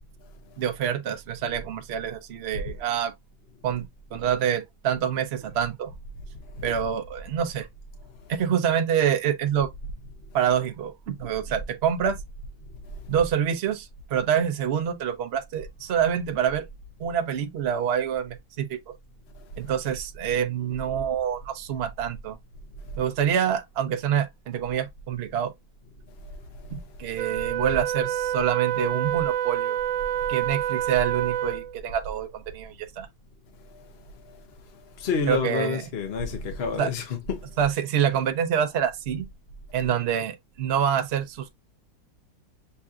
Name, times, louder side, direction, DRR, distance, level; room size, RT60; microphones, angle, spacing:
voice 1, 0.6-3.1 3.6-3.8 4.1-5.9 6.6-7.7 8.3-9.7 10.3-12.1 13.1-16.6 17.0-18.9 19.6-22.4 23.0-25.5 26.7-29.8 30.3-33.1 35.3-35.8 36.8-36.9 37.6-39.2 39.7-41.5, right 9 dB, 60° right, 0.7 m, -26 dB
voice 2, 12.9-13.2 19.4-19.5 26.2-26.4 27.0-27.1 30.2-30.3 33.7-33.9 34.2-34.4 35.0-37.5, left 5 dB, 50° left, 0.7 m, -30 dB
Wind instrument woodwind instrument, 27.2-31.8, right 11 dB, 85° right, 1.3 m, -28 dB
6.7 x 2.6 x 2.4 m
omnidirectional pair, 2.0 m